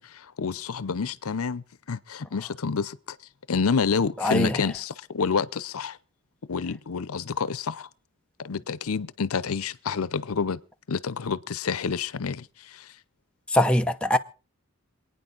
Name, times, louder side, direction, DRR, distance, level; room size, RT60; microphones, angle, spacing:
voice 1, 0.0-3.2 3.5-6.0 6.5-7.9 8.4-10.6 10.9-12.9, left 5 dB, 85° left, 0.7 m, -28 dB
voice 2, 4.2-4.5 13.5-14.2, left 1 dB, 5° left, 0.7 m, -21 dB
27.5 x 9.4 x 3.9 m
head